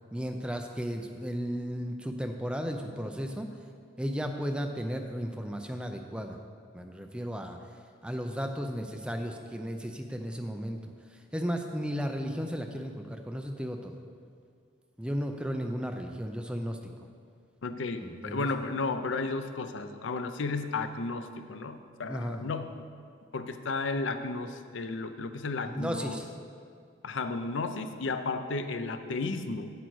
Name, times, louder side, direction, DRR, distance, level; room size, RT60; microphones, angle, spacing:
voice 1, 0.1-3.5 4.0-6.4 6.7-7.6 8.0-10.8 11.3-13.9 15.0-16.9 18.0-18.5 22.0-22.5 25.6-26.2, equal, 5° right, 4 dB, 0.5 m, -34 dB
voice 2, 17.6-22.8 23.3-26.2 27.0-29.7, left 3 dB, 85° left, 9 dB, 0.6 m, -33 dB
9.0 x 8.1 x 4.7 m, 2.2 s
head